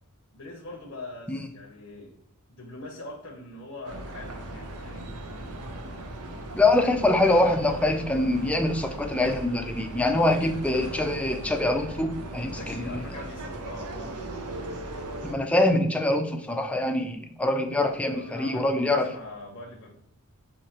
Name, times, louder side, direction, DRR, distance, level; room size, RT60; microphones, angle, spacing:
voice 1, 0.3-2.1 2.5-5.1 12.5-14.4 18.1-20.0, left 2 dB, 65° left, -1 dB, 0.7 m, -42 dB
sound 1, 3.9-15.4, right 1 dB, 80° right, 0.6 m, -38 dB
voice 2, 6.5-12.8 15.2-19.1, left 2 dB, 5° left, 4 dB, 0.4 m, -24 dB
4.5 x 2.8 x 2.8 m, 0.76 s
head